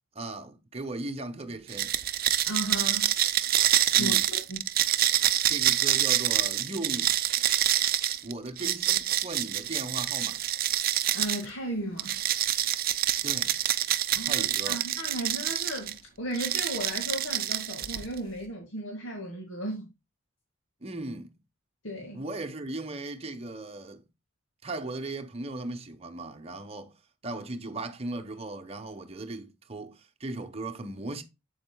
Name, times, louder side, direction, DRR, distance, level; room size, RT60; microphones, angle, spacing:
voice 1, 0.1-1.9 3.9-4.2 5.5-7.1 8.2-10.4 13.2-13.6 14.2-14.8 20.8-21.4 22.1-24.0 24.6-26.9 27.2-31.2, right 2 dB, 30° right, 1.0 m, -37 dB
sound 1, 1.7-11.4 12.0-15.9 16.3-18.2, right 12 dB, 50° right, 0.6 m, -26 dB
voice 2, 2.5-3.1 3.9-4.6 11.1-12.2 14.1-19.9 21.8-22.2, right 1 dB, 75° left, 2.0 m, -35 dB
7.9 x 7.8 x 2.2 m
head